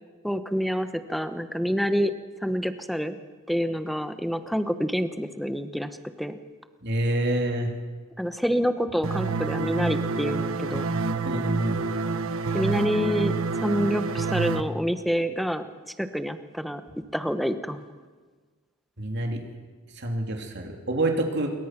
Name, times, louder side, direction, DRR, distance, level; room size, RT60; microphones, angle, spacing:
voice 1, 0.2-2.1 2.4-3.2 3.5-5.9 6.2-6.4 8.2-10.9 12.5-13.3 13.6-16.8 17.1-17.8, equal, ahead, 9 dB, 1.1 m, -27 dB
voice 2, 6.8-7.7 11.2-11.8 19.0-19.4 20.0-21.5, right 1 dB, 55° right, 2 dB, 3.2 m, -27 dB
sound 1, 9.0-14.6, right 3 dB, 75° right, 1.2 m, -28 dB
28.5 x 22.5 x 6.1 m, 1.4 s
head